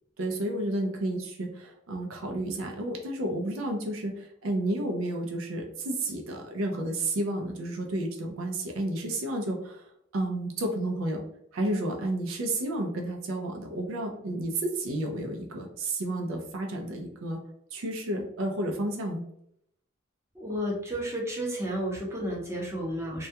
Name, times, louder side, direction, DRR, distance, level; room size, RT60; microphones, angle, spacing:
voice 1, 0.2-9.9 10.1-11.2 11.5-17.4 17.7-19.2, right 1 dB, 75° right, 2 dB, 0.4 m, -31 dB
voice 2, 20.3-23.3, equal, 15° right, -2 dB, 0.5 m, -32 dB
2.3 x 2.2 x 2.7 m, 0.73 s
head